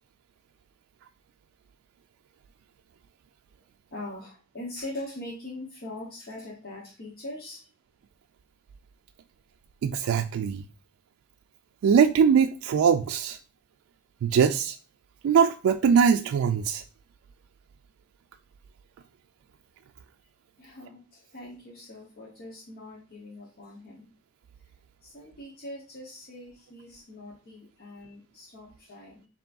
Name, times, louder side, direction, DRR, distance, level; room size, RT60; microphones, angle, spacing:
voice 1, 3.9-7.7 20.6-24.1 25.0-29.3, left 1 dB, 50° left, 1.0 m, -42 dB
voice 2, 9.8-10.6 11.8-13.4 14.2-14.8 15.2-16.8, right 7 dB, 85° right, 0.3 m, -22 dB
6.9 x 3.0 x 2.5 m
head